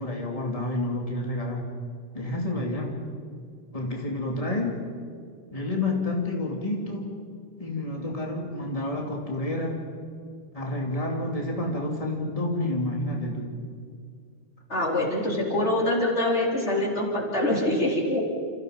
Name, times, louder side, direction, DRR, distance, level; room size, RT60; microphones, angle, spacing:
voice 1, 0.0-1.7 2.1-3.0 3.7-4.8 5.5-7.2 7.6-9.8 10.5-13.6, left 2 dB, 30° left, 0 dB, 3.0 m, -29 dB
voice 2, 14.7-18.2, left 1 dB, 70° left, -2 dB, 4.6 m, -24 dB
30.0 x 29.0 x 5.3 m, 2.2 s
omnidirectional pair, 1.2 m